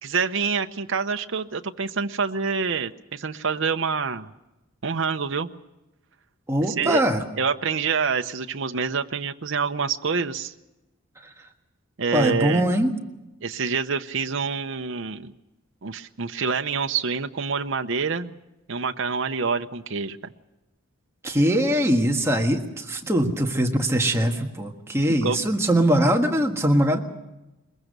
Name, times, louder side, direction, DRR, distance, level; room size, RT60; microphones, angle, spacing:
voice 1, 0.0-4.3 4.8-5.5 6.7-7.0 7.4-10.5 12.0-12.7 13.4-15.3 15.8-18.4 18.7-20.2 25.2-25.4, right 5 dB, 65° right, 6 dB, 0.8 m, -26 dB
voice 2, 6.5-7.2 12.1-12.9 21.2-27.0, right 1 dB, 15° right, 2 dB, 1.5 m, -22 dB
22.0 x 22.0 x 6.7 m, 0.99 s
head